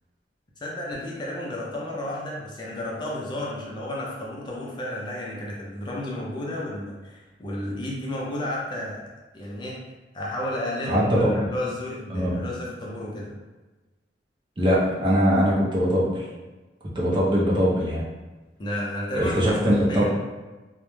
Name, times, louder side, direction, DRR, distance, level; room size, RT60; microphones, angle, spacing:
voice 1, 0.6-9.0 9.3-9.8 10.1-13.3 18.6-19.4 19.9-20.1, left 1 dB, 25° left, -4 dB, 0.4 m, -32 dB
voice 2, 10.9-11.4 12.1-12.3 14.6-16.1 17.0-18.0 19.1-20.1, equal, 25° right, -6 dB, 0.6 m, -21 dB
2.2 x 2.0 x 3.0 m, 1.2 s
head